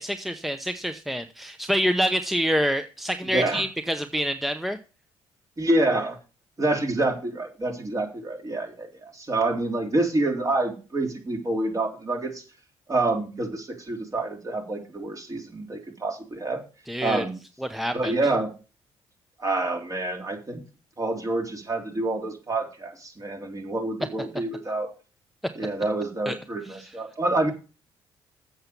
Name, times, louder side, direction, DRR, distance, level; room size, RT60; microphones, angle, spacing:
voice 1, 0.0-4.8 16.9-17.2 17.6-18.1 26.3-26.4 26.7-26.8, equal, ahead, 9 dB, 0.8 m, -27 dB
voice 2, 3.3-3.6 5.6-6.2 6.6-12.4 12.9-16.6 17.0-17.4 17.9-18.5 19.4-20.6 21.0-24.9 25.6-27.5, right 2 dB, 30° right, 2 dB, 3.5 m, -27 dB
7.9 x 7.0 x 6.8 m, 0.33 s
supercardioid pair, 65°, 11 cm